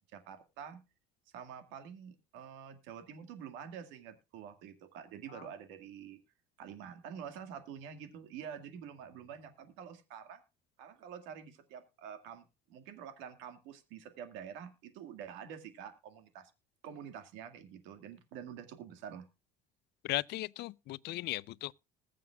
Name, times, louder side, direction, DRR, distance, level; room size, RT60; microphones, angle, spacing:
voice 1, 0.1-0.8 1.3-6.2 6.6-10.4 10.8-16.5 16.8-19.3, right 8 dB, 85° right, 2.1 m, -47 dB
voice 2, 20.0-21.7, left 17 dB, 65° left, 0.5 m, -37 dB
20.5 x 7.5 x 2.3 m
cardioid pair, 110°, 19 cm